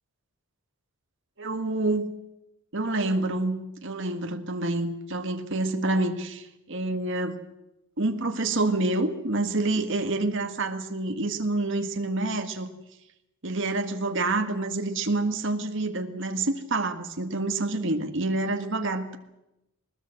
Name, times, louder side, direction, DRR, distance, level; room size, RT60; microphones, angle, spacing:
voice 1, 1.4-2.1 2.7-7.4 8.0-12.7 13.4-19.2, right 2 dB, 55° right, 6 dB, 1.9 m, -27 dB
22.5 x 20.0 x 7.8 m, 0.92 s
head